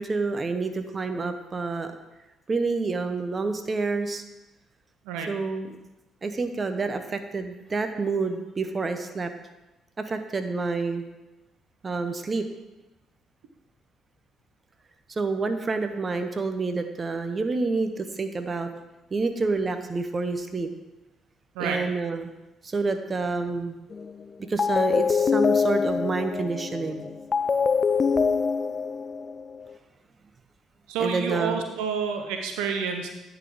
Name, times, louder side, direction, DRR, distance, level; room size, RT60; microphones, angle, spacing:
voice 1, 0.0-1.9 2.5-4.2 5.3-5.8 6.2-9.3 10.0-11.0 11.8-12.4 15.1-18.7 19.1-20.7 21.6-22.3 22.6-23.8 24.5-27.1 31.0-31.6, right 3 dB, 35° right, 8 dB, 0.8 m, -28 dB
sound 1, 23.9-24.2 24.6-29.7, left 5 dB, 40° left, 0.4 m, -24 dB
voice 2, 30.9-33.1, right 6 dB, 80° right, 4 dB, 0.7 m, -29 dB
9.7 x 4.1 x 4.9 m, 1.0 s
hypercardioid pair, 55°, 0 cm